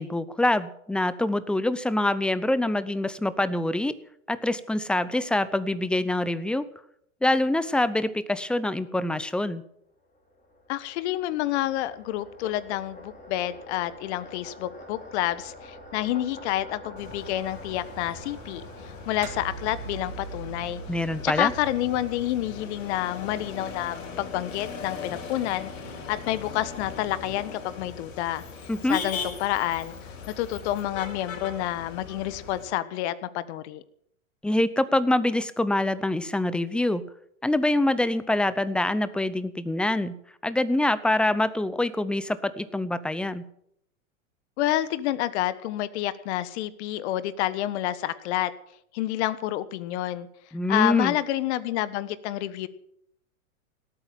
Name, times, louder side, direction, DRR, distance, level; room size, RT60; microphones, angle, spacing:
voice 1, 0.0-3.9 4.3-6.6 7.2-9.6 20.9-21.5 28.7-29.0 34.4-37.0 37.4-40.1 40.4-43.4 50.5-51.1, left 1 dB, ahead, 15 dB, 0.6 m, -25 dB
sound 1, 10.0-20.7, left 1 dB, 20° left, 4.4 m, -47 dB
voice 2, 10.7-20.8 21.2-25.7 26.1-28.4 28.9-29.9 30.4-33.8 44.6-48.5 48.9-50.3 50.7-52.7, left 14 dB, 50° left, 15 dB, 1.4 m, -29 dB
Motor vehicle (road), 17.0-32.6, left 5 dB, 70° left, 6.1 m, -40 dB
sound 2, 19.2-24.0, right 4 dB, 75° right, 3.5 m, -42 dB
18.0 x 8.9 x 8.9 m, 0.73 s
hypercardioid pair, 120°, 42 cm